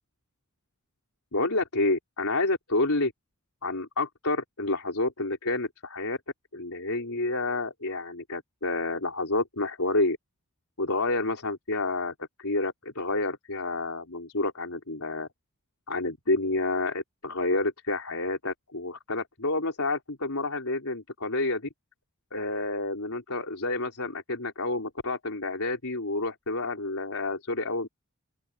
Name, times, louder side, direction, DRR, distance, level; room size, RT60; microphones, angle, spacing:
voice 1, 1.3-3.1 3.6-6.2 6.5-10.2 10.8-15.3 15.9-21.7 22.3-27.9, left 2 dB, 75° left, 4.0 m, -29 dB
open air
head